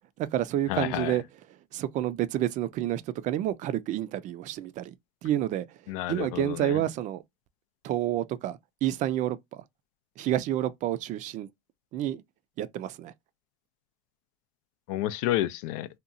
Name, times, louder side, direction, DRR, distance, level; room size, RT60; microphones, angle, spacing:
voice 1, 0.2-1.2 1.5-4.9 5.2-7.2 7.8-9.6 10.2-11.5 11.9-12.2 12.6-13.1, right 12 dB, 45° right, 0.4 m, -29 dB
voice 2, 0.7-1.1 5.9-6.8 14.9-15.9, left 14 dB, 80° left, 0.4 m, -30 dB
2.8 x 2.2 x 2.5 m
supercardioid pair, 115°, 17 cm